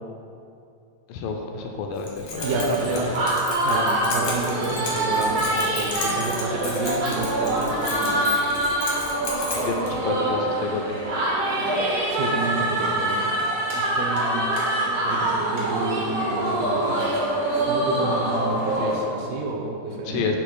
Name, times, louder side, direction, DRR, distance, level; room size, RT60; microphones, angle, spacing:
voice 1, 1.1-2.5 9.5-10.9 20.1-20.4, left 4 dB, 80° left, 2 dB, 2.1 m, -29 dB
Keys jangling, 2.0-9.9, left 3 dB, 60° left, 1.6 m, -34 dB
sound 1, 2.4-18.9, right 1 dB, 65° right, 1.3 m, -25 dB
voice 2, 2.4-3.1 3.6-8.3 12.1-13.3 13.7-14.6 15.0-17.1 17.7-20.3, right 2 dB, 85° right, 0 dB, 2.8 m, -30 dB
9.8 x 6.5 x 2.3 m, 2.5 s
omnidirectional pair, 4.2 m